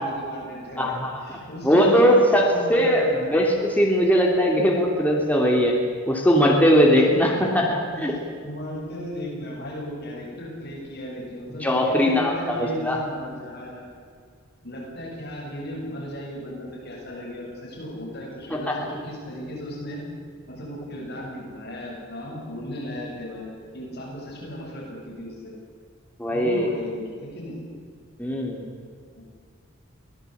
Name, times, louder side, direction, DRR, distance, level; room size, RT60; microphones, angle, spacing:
voice 1, 0.0-0.9 1.2-3.3 7.1-7.4 7.9-13.8 14.6-20.0 20.5-23.5 23.7-25.5 26.3-27.6 29.1-29.2, left 1 dB, 50° left, -3 dB, 7.9 m, -36 dB
voice 2, 0.8-1.2 1.6-5.8 6.1-8.1 11.6-13.0 18.5-18.7 26.2-26.7 28.2-28.6, equal, 10° left, -1 dB, 2.9 m, -20 dB
24.0 x 18.0 x 8.5 m, 2.1 s
head